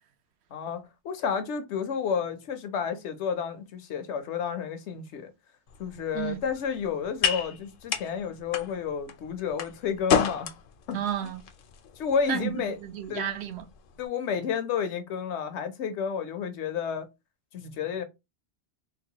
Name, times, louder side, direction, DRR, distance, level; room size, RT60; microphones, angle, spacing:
voice 1, 0.5-5.3 5.8-10.6 10.9-11.0 12.0-12.8 13.1-13.2 14.0-17.1 17.5-18.0, left 7 dB, 85° left, 1.0 m, -31 dB
sound 1, 5.7-14.1, left 7 dB, 60° left, 0.6 m, -33 dB
voice 2, 10.9-11.4 12.3-13.6, right 9 dB, 75° right, 0.8 m, -32 dB
3.9 x 2.1 x 2.8 m
omnidirectional pair, 1.1 m